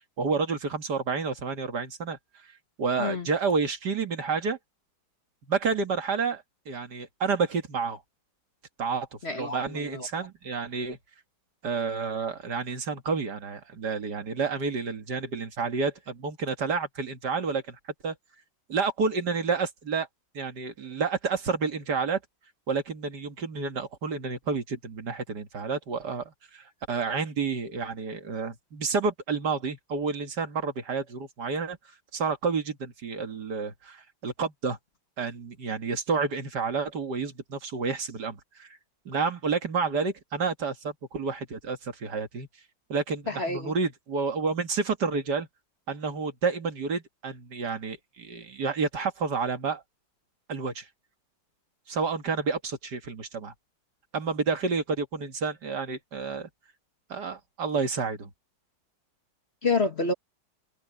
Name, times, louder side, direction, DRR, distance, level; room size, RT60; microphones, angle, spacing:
voice 1, 0.2-2.2 2.8-4.6 5.5-8.0 8.8-11.0 11.6-17.8 18.0-18.1 18.7-20.1 20.3-22.2 22.7-31.8 32.1-34.8 35.2-38.7 39.1-42.5 42.9-45.5 45.9-49.8 50.5-50.9 51.9-53.5 54.1-56.5 57.1-58.3, right 5 dB, 60° right, 2.3 m, -30 dB
voice 2, 9.2-10.1 43.3-43.7 59.6-60.1, left 3 dB, 35° left, 1.7 m, -28 dB
omnidirectional pair, 2.1 m